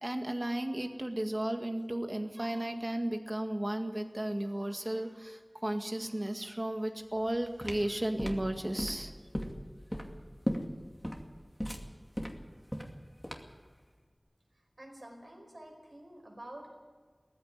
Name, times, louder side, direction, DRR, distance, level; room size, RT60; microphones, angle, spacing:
voice 1, 0.0-9.1, right 1 dB, 35° right, 5 dB, 1.9 m, -34 dB
sound 1, 7.2-13.7, equal, 10° left, 2.5 m, -37 dB
voice 2, 14.8-16.7, right 1 dB, 70° right, 2 dB, 5.1 m, -48 dB
18.0 x 14.5 x 9.8 m, 1.5 s
wide cardioid pair, 45°, 0 cm